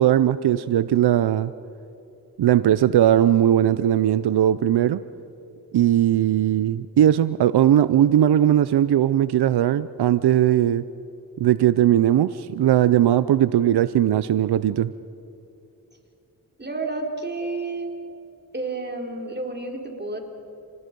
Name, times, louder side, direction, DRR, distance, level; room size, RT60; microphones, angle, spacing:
voice 1, 0.0-1.5 2.4-5.0 5.7-10.8 11.4-14.9, right 11 dB, 90° right, 15 dB, 0.6 m, -19 dB
voice 2, 16.6-18.0 18.5-20.2, right 3 dB, 25° right, 1 dB, 4.2 m, -30 dB
29.5 x 19.5 x 5.3 m, 2.7 s
cardioid pair, 55°, 38 cm